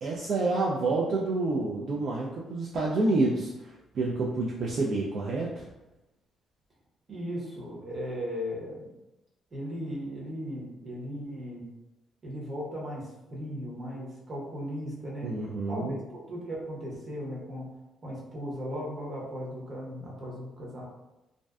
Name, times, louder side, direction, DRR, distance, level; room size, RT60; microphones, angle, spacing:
voice 1, 0.0-5.7 15.2-16.0, right 2 dB, 60° right, -3 dB, 0.3 m, -28 dB
voice 2, 7.1-8.9 9.5-11.6 12.2-15.3 15.7-17.7 18.0-20.8, equal, 35° right, -4 dB, 0.9 m, -37 dB
2.5 x 2.1 x 2.3 m, 0.96 s
cardioid pair, 90°, 0 cm